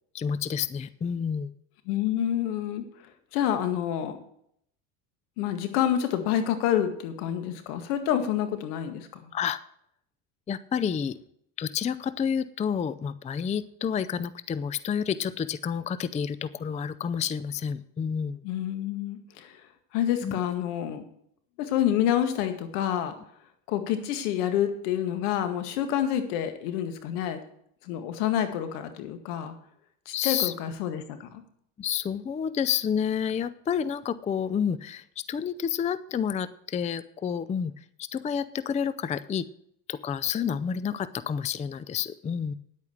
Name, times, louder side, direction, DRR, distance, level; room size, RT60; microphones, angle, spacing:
voice 1, 0.1-1.5 9.3-9.6 10.5-11.2 11.6-18.4 20.2-20.4 30.1-30.5 31.8-37.7 38.0-39.5 39.9-42.5, left 7 dB, 15° left, 16 dB, 0.4 m, -29 dB
voice 2, 1.9-2.9 3.3-4.2 5.4-9.3 18.4-19.6 19.9-21.0 21.6-23.1 23.7-27.4 27.8-29.5 30.1-31.4, left 10 dB, 85° left, 8 dB, 2.0 m, -28 dB
10.0 x 8.5 x 6.5 m, 0.69 s
supercardioid pair, 105°, 45 cm